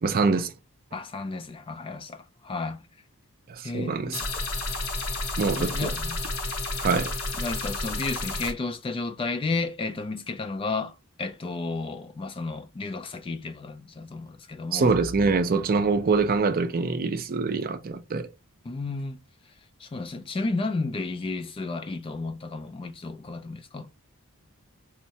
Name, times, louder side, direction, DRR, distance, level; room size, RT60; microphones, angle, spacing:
voice 1, 0.0-0.5 3.5-4.2 5.4-5.9 6.8-7.1 14.7-18.3, right 4 dB, 40° right, 0.4 m, -24 dB
voice 2, 0.9-2.8 3.6-4.2 5.6-6.2 7.4-14.9 18.6-19.2 19.8-23.9, left 3 dB, 25° left, 0.3 m, -32 dB
sound 1, 4.1-8.5, left 2 dB, 70° left, 0.8 m, -31 dB
4.4 x 2.1 x 2.7 m
head